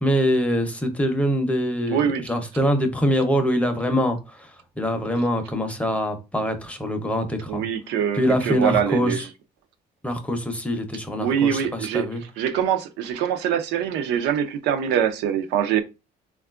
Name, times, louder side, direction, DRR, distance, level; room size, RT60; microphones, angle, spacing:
voice 1, 0.0-7.6 8.1-9.3 10.0-12.2, equal, 10° left, 0.6 m, -24 dB
voice 2, 1.9-2.2 7.5-9.2 11.2-12.1 12.4-15.8, right 8 dB, 85° right, 0.4 m, -23 dB
3.5 x 2.3 x 2.3 m
cardioid pair, 110°, 17 cm